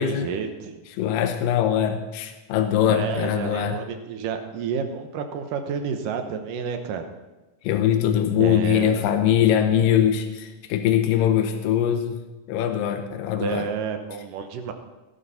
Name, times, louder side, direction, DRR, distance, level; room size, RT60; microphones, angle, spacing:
voice 1, 0.0-0.8 2.8-7.1 8.4-9.0 13.3-14.7, right 6 dB, 80° right, 6 dB, 2.7 m, -30 dB
voice 2, 0.9-3.8 7.6-12.2 12.5-13.7, left 9 dB, 90° left, 6 dB, 2.5 m, -22 dB
16.5 x 11.0 x 4.2 m, 1.1 s
omnidirectional pair, 3.9 m